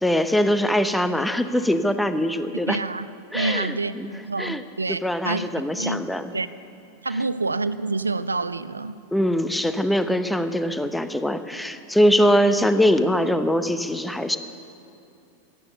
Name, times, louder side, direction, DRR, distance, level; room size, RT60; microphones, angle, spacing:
voice 1, 0.0-2.8 3.3-4.1 4.4-4.6 4.9-6.3 9.1-14.4, equal, 5° left, 10 dB, 0.8 m, -22 dB
voice 2, 2.7-3.1 3.3-5.5 5.8-6.0 6.3-6.5 7.0-9.0, right 3 dB, 80° right, 15 dB, 0.5 m, -27 dB
16.5 x 12.5 x 6.8 m, 2.8 s
figure-of-eight pair, 90°, 0 cm